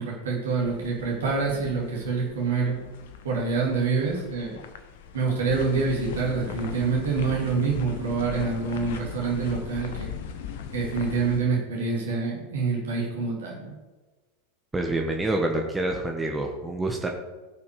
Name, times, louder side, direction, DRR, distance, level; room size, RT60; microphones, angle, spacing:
voice 1, 0.0-2.8 3.2-4.6 5.1-10.2 10.7-13.7, right 4 dB, 65° right, -2 dB, 2.6 m, -26 dB
sound 1, 0.6-11.4, left 8 dB, 60° left, 1.0 m, -38 dB
voice 2, 14.7-17.1, right 2 dB, 10° right, 2 dB, 1.3 m, -27 dB
17.0 x 5.9 x 4.9 m, 1.2 s
figure-of-eight pair, 90°, 0 cm